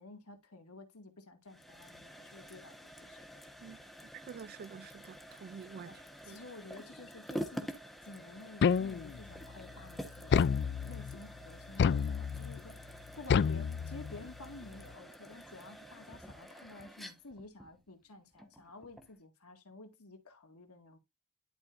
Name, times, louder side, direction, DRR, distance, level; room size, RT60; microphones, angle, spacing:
voice 1, 0.0-3.2 5.8-12.9 13.2-21.0, left 2 dB, 80° left, 2.0 m, -52 dB
sound 1, 1.5-19.2, equal, ahead, 1.1 m, -48 dB
voice 2, 4.3-6.0 6.3-6.4, right 6 dB, 45° right, 0.3 m, -48 dB
sound 2, 8.6-9.3 10.3-11.2 11.8-12.6 13.3-14.3, left 6 dB, 50° left, 0.3 m, -29 dB
11.5 x 4.4 x 2.5 m
head